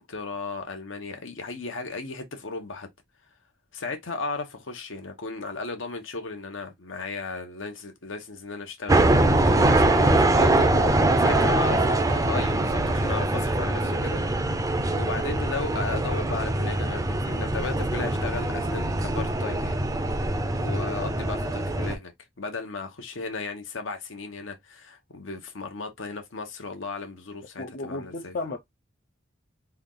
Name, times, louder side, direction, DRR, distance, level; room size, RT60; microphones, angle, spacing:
voice 1, 0.0-2.9 3.7-9.1 9.4-10.7 11.2-14.7 14.9-19.8 20.6-28.4, left 4 dB, 75° left, 1.0 m, -35 dB
sound 1, 8.9-22.0, right 2 dB, 15° right, 0.5 m, -23 dB
voice 2, 10.5-11.3 27.6-28.6, left 3 dB, 50° left, 0.6 m, -34 dB
3.4 x 2.4 x 3.8 m
head